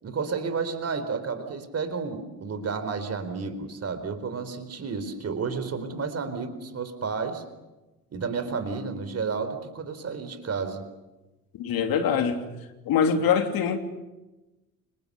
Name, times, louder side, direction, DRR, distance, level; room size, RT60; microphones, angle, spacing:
voice 1, 0.0-7.4 8.1-10.8, right 5 dB, 30° right, 10 dB, 4.4 m, -31 dB
voice 2, 11.6-12.5 12.9-13.8, left 7 dB, 45° left, 6 dB, 3.1 m, -23 dB
30.0 x 27.0 x 7.0 m, 1.1 s
figure-of-eight pair, 60°, 47 cm